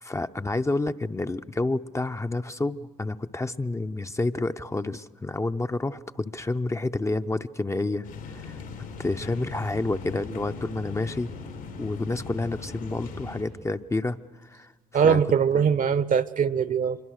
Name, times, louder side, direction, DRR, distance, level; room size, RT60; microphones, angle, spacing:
voice 1, 0.0-8.6 9.0-11.3 11.8-15.2 15.5-15.6, left 2 dB, 15° left, 8 dB, 0.6 m, -29 dB
sound 1, 8.0-13.4, left 4 dB, 90° left, 3.5 m, -39 dB
voice 2, 14.9-17.0, right 7 dB, 50° right, 16 dB, 0.9 m, -22 dB
25.0 x 23.0 x 6.5 m, 1.4 s
hypercardioid pair, 55°, 18 cm